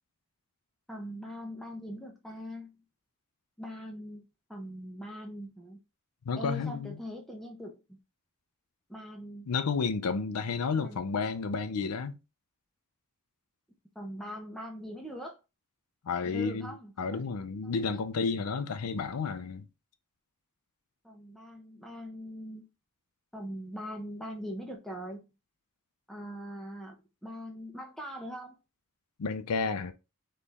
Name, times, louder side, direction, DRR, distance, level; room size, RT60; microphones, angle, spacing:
voice 1, 0.9-2.8 3.6-5.8 6.4-8.0 8.9-9.5 10.8-11.0 13.9-15.4 16.2-17.2 17.6-18.0 21.0-22.6 23.3-25.3 26.1-27.0 27.2-28.6, equal, ahead, 0.7 m, -42 dB
voice 2, 6.3-7.0 9.5-12.2 16.1-19.7 29.2-29.9, left 5 dB, 90° left, 0.5 m, -31 dB
4.3 x 3.2 x 3.4 m
head